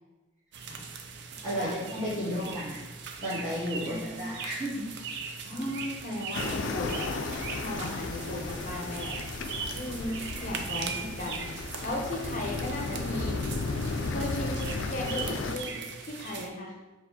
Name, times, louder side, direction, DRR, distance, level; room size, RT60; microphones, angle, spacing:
sound 1, 0.5-16.5, right 5 dB, 60° right, 0.4 m, -40 dB
voice 1, 1.4-2.8 3.2-4.8, equal, 10° right, -15 dB, 1.5 m, -33 dB
voice 2, 3.8-4.3 5.4-7.1 7.5-9.2 9.7-11.4 11.8-13.4 14.1-16.7, left 1 dB, 40° left, 0 dB, 0.8 m, -36 dB
sound 2, 6.3-15.6, left 3 dB, 65° left, 0.4 m, -34 dB
6.6 x 2.4 x 2.7 m, 1.2 s
head